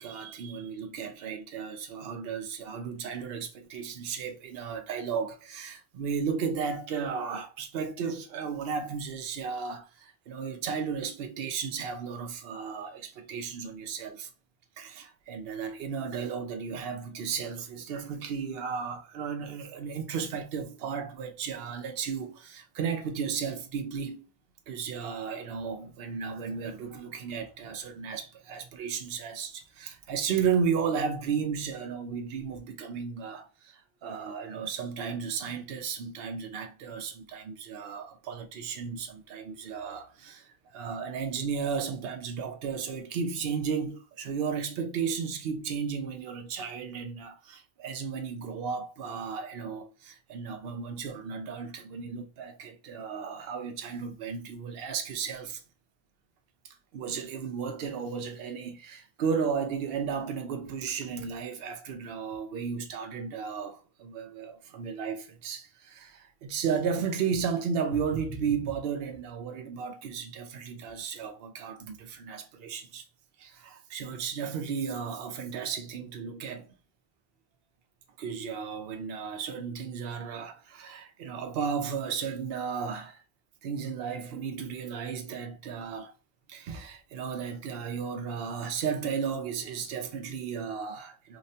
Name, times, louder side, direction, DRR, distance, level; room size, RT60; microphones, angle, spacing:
voice 1, 0.0-14.3 14.8-24.3 24.7-55.6 56.9-73.0 73.4-76.7 78.2-83.2 83.6-86.1 86.5-91.4, right 6 dB, 70° right, 0.8 m, -34 dB
4.2 x 2.2 x 2.7 m
omnidirectional pair, 1.1 m